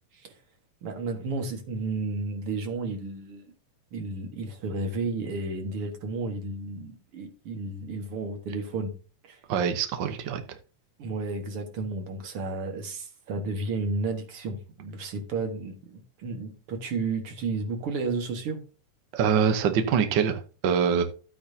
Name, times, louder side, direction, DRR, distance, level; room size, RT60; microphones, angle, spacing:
voice 1, 0.8-3.4 3.9-8.9 9.2-9.4 11.0-18.6, right 3 dB, 55° right, 6 dB, 2.2 m, -32 dB
voice 2, 9.5-10.4 19.1-21.0, right 7 dB, 75° right, 7 dB, 1.0 m, -24 dB
12.0 x 8.6 x 2.7 m, 0.36 s
omnidirectional pair, 3.4 m